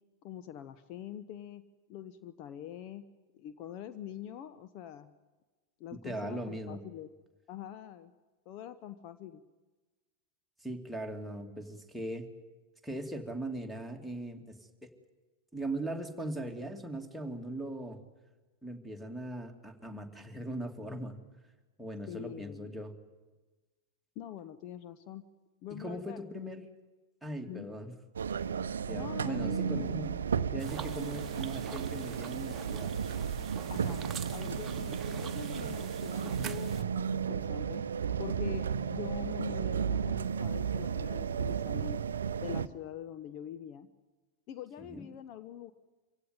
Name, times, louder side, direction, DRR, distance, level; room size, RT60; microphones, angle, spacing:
voice 1, 0.2-1.6 1.9-3.0 3.3-5.1 5.8-7.1 7.5-8.1 8.5-9.4 22.1-22.7 24.2-25.3 25.6-26.5 27.5-27.7 28.9-29.9 33.7-34.0 34.3-37.8 38.2-42.0 42.4-43.9 44.5-45.7, left 10 dB, 40° left, 11 dB, 0.9 m, -44 dB
voice 2, 6.0-6.8 10.6-12.3 12.8-14.6 14.8-14.9 15.5-18.0 18.6-21.2 21.8-22.9 25.8-26.6 27.2-27.9 28.9-30.1 30.5-32.9 44.8-45.1, right 1 dB, ahead, 1 dB, 2.6 m, -39 dB
sound 1, 28.2-42.7, right 7 dB, 65° right, 0.7 m, -34 dB
sound 2, 30.6-36.8, right 7 dB, 25° right, 1.3 m, -45 dB
25.0 x 16.5 x 9.7 m, 1.3 s
figure-of-eight pair, 90°, 0 cm